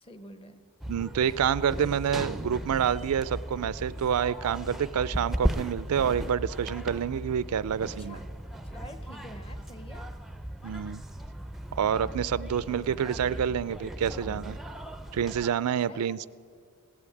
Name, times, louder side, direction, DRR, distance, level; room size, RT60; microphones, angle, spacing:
voice 1, 0.0-0.6 8.0-8.3 8.6-10.1 14.2-14.6 15.9-16.2, equal, 25° left, 9 dB, 0.9 m, -47 dB
sound 1, 0.8-15.5, right 1 dB, ahead, 0.4 m, -37 dB
voice 2, 0.9-8.2 10.6-11.0 11.8-14.6 15.1-16.3, right 8 dB, 85° right, 19 dB, 0.4 m, -28 dB
17.0 x 8.6 x 8.4 m, 2.1 s
head